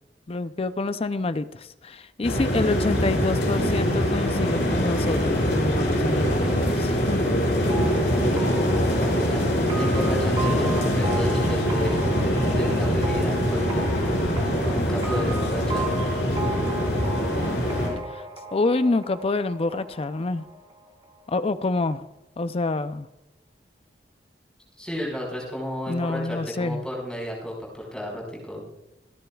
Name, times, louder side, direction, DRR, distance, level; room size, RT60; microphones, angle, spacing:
voice 1, 0.3-7.3 18.1-18.2 18.5-20.4 21.3-22.1 22.4-23.1 25.9-26.8, left 3 dB, 35° left, 12 dB, 0.5 m, -27 dB
sound 1, 2.2-17.9, equal, 70° left, 5.4 m, -23 dB
sound 2, 7.7-21.2, right 2 dB, 30° right, 1.9 m, -36 dB
voice 2, 8.1-8.5 9.2-9.4 9.8-12.0 12.5-13.9 14.6-15.9 24.8-28.6, equal, 5° left, -2 dB, 5.0 m, -32 dB
27.0 x 10.0 x 2.3 m, 0.93 s
head